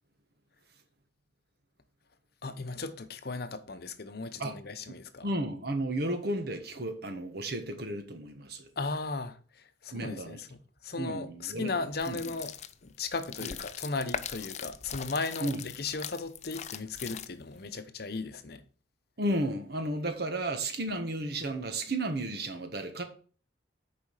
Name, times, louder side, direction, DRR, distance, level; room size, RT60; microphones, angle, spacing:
voice 1, 2.4-5.3 8.8-10.5 10.8-12.5 12.8-18.6, left 3 dB, 55° left, 0.9 m, -36 dB
voice 2, 5.2-8.7 9.9-10.4 11.0-11.7 12.1-12.2 13.4-13.5 15.4-15.6 19.2-23.0, right 1 dB, 55° right, 1.4 m, -33 dB
sound 1, 11.9-17.6, left 8 dB, 40° left, 0.5 m, -41 dB
6.9 x 5.0 x 6.4 m
head